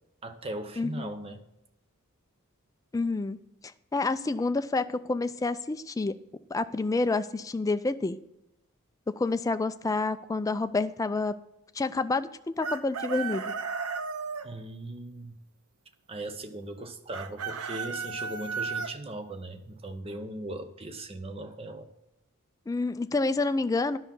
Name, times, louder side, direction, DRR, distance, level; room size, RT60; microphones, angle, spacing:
voice 1, 0.2-1.4 14.4-15.4 16.1-21.9, right 2 dB, 25° right, 8 dB, 0.7 m, -39 dB
voice 2, 0.8-1.1 2.9-3.4 3.9-6.1 6.5-8.2 9.2-11.3 11.8-13.4 22.7-24.0, left 3 dB, 15° left, 11 dB, 0.3 m, -28 dB
Chicken rooster, 12.6-14.5 17.1-18.9, right 5 dB, 90° right, 0.6 m, -34 dB
10.5 x 5.8 x 5.4 m, 0.90 s
head